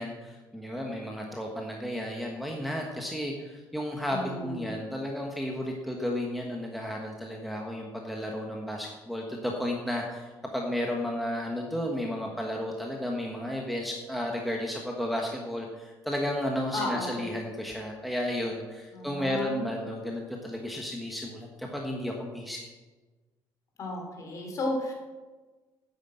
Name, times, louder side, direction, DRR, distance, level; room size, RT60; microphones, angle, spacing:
voice 1, 0.0-22.7, left 1 dB, ahead, 0 dB, 1.2 m, -33 dB
voice 2, 4.1-4.8 16.7-17.3 18.9-19.6 23.8-24.9, left 1 dB, 40° left, 2 dB, 3.2 m, -33 dB
9.9 x 9.4 x 7.7 m, 1.3 s
cardioid pair, 165°, 9 cm